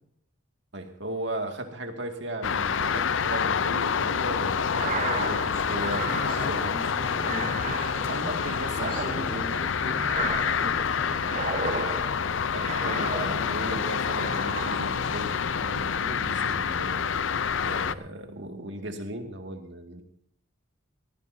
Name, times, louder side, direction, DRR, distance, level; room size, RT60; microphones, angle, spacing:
voice 1, 0.7-6.8 8.0-9.6 12.5-17.2 17.6-20.0, right 1 dB, 60° right, 4 dB, 2.1 m, -37 dB
sound 1, 2.4-17.9, left 6 dB, 65° left, 0.6 m, -27 dB
sound 2, 4.7-13.7 14.1-15.2, right 4 dB, 35° right, 1.4 m, -35 dB
voice 2, 6.0-8.4 8.8-11.7, left 1 dB, 30° left, -1 dB, 4.1 m, -39 dB
20.0 x 16.0 x 2.8 m, 0.67 s
head